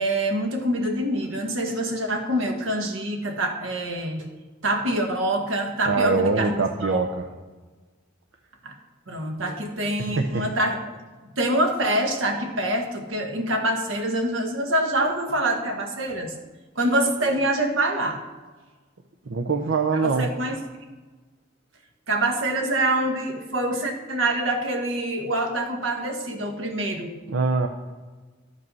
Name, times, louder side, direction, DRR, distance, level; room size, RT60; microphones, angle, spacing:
voice 1, 0.0-4.3 4.6-6.5 6.8-7.0 8.6-8.7 9.1-10.8 11.4-16.3 16.7-18.2 19.9-20.6 22.1-27.1, right 1 dB, 85° right, 3 dB, 1.5 m, -25 dB
voice 2, 5.9-7.2 10.0-10.4 19.3-20.3 27.3-27.7, right 4 dB, 70° right, 4 dB, 0.7 m, -23 dB
13.0 x 5.4 x 5.5 m, 1.3 s
head